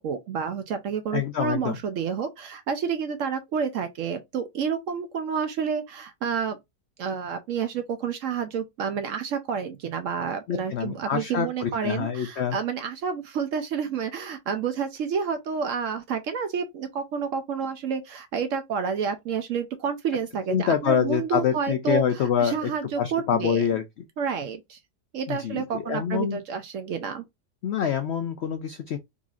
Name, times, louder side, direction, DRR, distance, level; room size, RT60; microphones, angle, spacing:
voice 1, 0.0-6.6 7.0-23.6 24.2-24.8 25.1-27.2, right 6 dB, 70° right, 0.8 m, -29 dB
voice 2, 1.1-1.8 10.5-12.6 20.5-22.7 23.0-23.8 25.3-26.4 27.6-29.0, left 8 dB, 80° left, 0.5 m, -26 dB
3.9 x 3.0 x 2.4 m
omnidirectional pair, 1.7 m